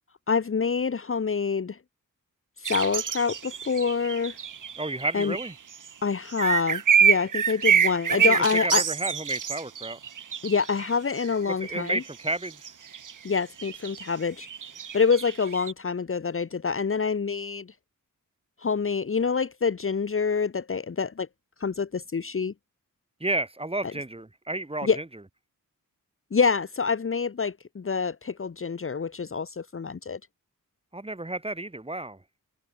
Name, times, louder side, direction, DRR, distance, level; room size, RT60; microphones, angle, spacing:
voice 1, 0.3-1.8 2.6-4.3 5.1-5.4 6.0-8.8 10.4-12.0 13.2-14.5 14.9-17.7 18.6-21.3 21.6-22.5 24.8-25.0 26.3-30.2, left 5 dB, 40° left, 1.2 m, -26 dB
sound 1, 2.6-5.9 6.3-10.9 11.2-15.7, right 7 dB, 65° right, 1.4 m, -26 dB
voice 2, 4.8-5.5 8.1-10.0 11.6-12.7 23.2-25.0 30.9-32.2, right 2 dB, 15° right, 5.0 m, -31 dB
wide cardioid pair, 105°, 33 cm